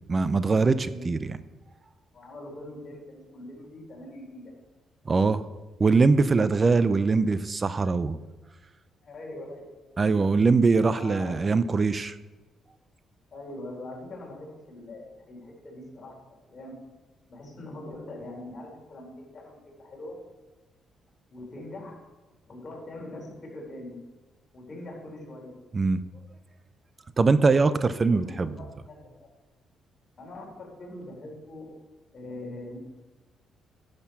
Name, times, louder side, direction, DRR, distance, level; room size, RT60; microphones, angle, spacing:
voice 1, 0.1-1.4 5.1-5.5 5.8-8.2 10.0-12.2 25.7-26.0 27.2-28.6, right 4 dB, 35° right, 14 dB, 0.5 m, -22 dB
voice 2, 0.9-1.2 2.1-4.5 9.0-9.9 10.8-11.6 13.3-16.8 17.3-20.2 21.3-22.0 22.5-24.0 24.5-25.5 27.7-29.3 30.2-31.7 32.1-32.8, left 1 dB, 40° left, -2 dB, 4.3 m, -42 dB
11.0 x 6.7 x 6.0 m, 1.1 s
cardioid pair, 90°, 0 cm